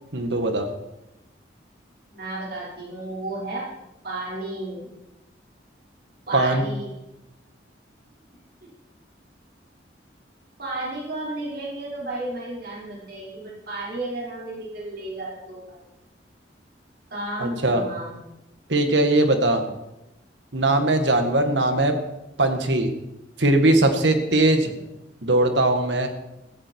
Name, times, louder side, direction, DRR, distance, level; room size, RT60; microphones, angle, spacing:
voice 1, 0.1-0.7 6.3-6.7 17.4-17.8 18.7-19.6 20.5-21.9 22.4-22.9 23.4-24.7 25.2-26.1, right 2 dB, 80° right, 6 dB, 1.9 m, -20 dB
voice 2, 2.1-3.6 4.0-4.9 6.3-6.9 10.6-15.8 17.1-18.2 19.6-19.7 21.3-21.6 24.6-24.8, right 2 dB, 60° right, -5 dB, 5.4 m, -33 dB
15.5 x 14.5 x 4.7 m, 0.91 s
head